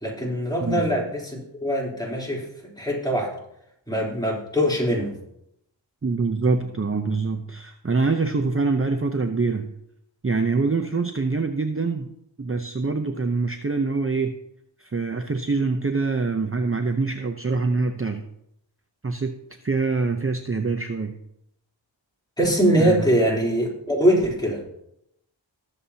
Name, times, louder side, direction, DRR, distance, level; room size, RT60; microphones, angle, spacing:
voice 1, 0.0-2.4 2.8-3.3 3.9-5.1 22.4-24.6, equal, 10° left, -3 dB, 3.4 m, -22 dB
voice 2, 6.0-9.7 10.2-12.1 12.4-14.4 14.8-18.3 19.0-19.3 19.6-21.2 22.8-23.0, right 4 dB, 30° right, 6 dB, 0.7 m, -25 dB
20.0 x 7.3 x 2.8 m, 0.79 s
wide cardioid pair, 50°, 45 cm